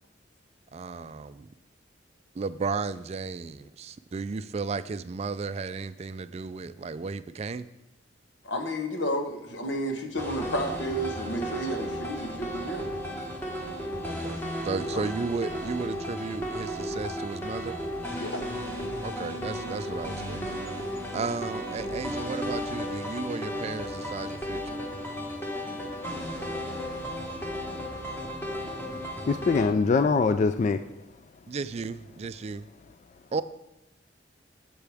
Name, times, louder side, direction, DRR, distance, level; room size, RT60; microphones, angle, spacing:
voice 1, 0.7-1.5 2.3-7.7 14.0-14.4 14.6-17.7 19.0-20.6 21.1-24.8 31.5-32.7 33.3-33.4, right 4 dB, 35° right, 13 dB, 0.3 m, -34 dB
voice 2, 8.4-12.9 14.9-15.0 18.2-18.4, equal, 85° left, 4 dB, 1.2 m, -31 dB
sound 1, 10.2-29.7, equal, 10° left, 1.4 m, -34 dB
voice 3, 29.3-30.8, left 4 dB, 40° left, 10 dB, 0.3 m, -23 dB
11.5 x 7.7 x 3.5 m, 0.91 s
head